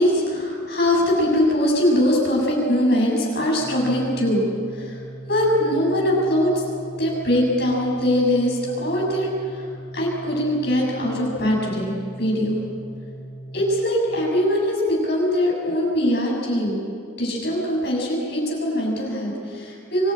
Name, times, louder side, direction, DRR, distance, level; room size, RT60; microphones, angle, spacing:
voice 1, 0.0-4.4 4.7-5.0 5.3-6.6 7.0-9.7 9.9-12.5 13.5-16.8 17.2-20.1, left 1 dB, 55° left, -1 dB, 6.8 m, -22 dB
Organ, 3.6-14.5, right 1 dB, ahead, 2.9 m, -38 dB
25.0 x 15.0 x 8.9 m, 2.4 s
head